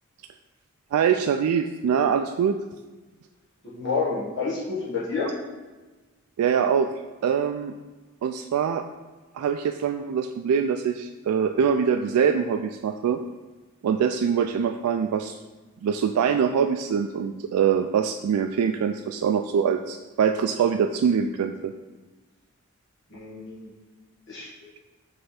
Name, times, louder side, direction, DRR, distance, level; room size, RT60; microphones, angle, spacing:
voice 1, 0.9-2.5 6.4-6.9 7.2-7.7 8.2-8.8 9.3-13.2 13.8-15.4 15.8-21.7, right 7 dB, 85° right, 8 dB, 0.3 m, -23 dB
voice 2, 3.7-5.3 23.1-23.7 24.3-24.5, left 4 dB, 55° left, -8 dB, 1.3 m, -29 dB
5.5 x 3.4 x 5.7 m, 1.2 s
head